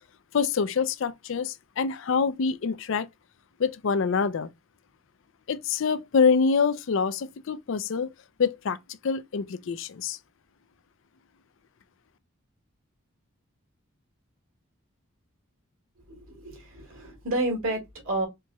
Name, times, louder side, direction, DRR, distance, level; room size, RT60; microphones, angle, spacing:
voice 1, 0.3-3.1 3.6-4.5 5.5-8.1 8.4-8.8 9.0-10.2, left 5 dB, 65° left, 0.4 m, -25 dB
voice 2, 16.0-18.3, right 2 dB, 75° right, 2.1 m, -30 dB
4.5 x 2.9 x 2.2 m
head